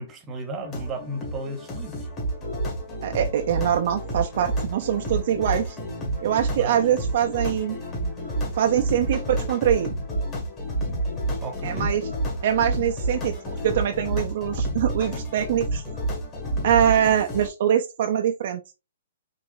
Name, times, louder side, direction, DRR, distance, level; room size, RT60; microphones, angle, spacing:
voice 1, 0.0-2.0 6.6-7.0 11.4-11.9, right 1 dB, 20° right, 1.0 m, -34 dB
sound 1, 0.6-17.5, right 1 dB, 25° left, 1.9 m, -29 dB
voice 2, 3.0-5.8 6.2-7.7 8.5-9.9 11.6-12.1 12.4-15.8 16.6-18.6, right 10 dB, 55° right, 0.4 m, -23 dB
4.7 x 3.3 x 2.6 m
hypercardioid pair, 150°, 0 cm